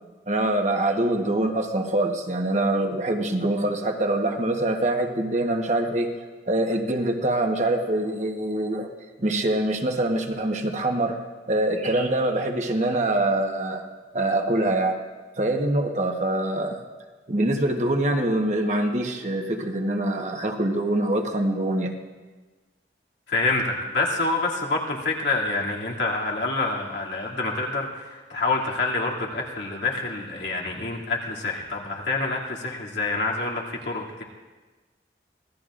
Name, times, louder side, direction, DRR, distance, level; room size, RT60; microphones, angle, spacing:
voice 1, 0.3-6.1 6.5-8.9 9.2-11.2 11.5-13.9 14.1-15.0 15.4-16.8 17.3-21.9, right 1 dB, 40° right, 3 dB, 1.2 m, -24 dB
voice 2, 23.3-34.2, left 3 dB, 80° left, -3 dB, 2.7 m, -27 dB
25.0 x 17.5 x 2.6 m, 1.3 s
head